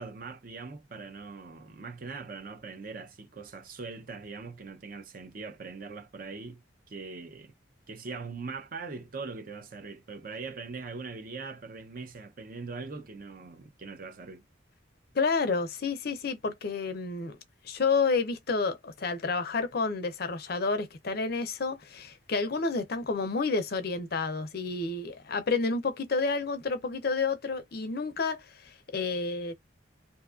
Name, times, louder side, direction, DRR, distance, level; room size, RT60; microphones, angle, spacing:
voice 1, 0.0-6.6 6.9-7.5 7.9-14.4, right 4 dB, 45° right, 0.5 m, -41 dB
voice 2, 15.1-17.4 17.6-29.5, left 4 dB, 50° left, 0.5 m, -30 dB
2.6 x 2.3 x 2.3 m
head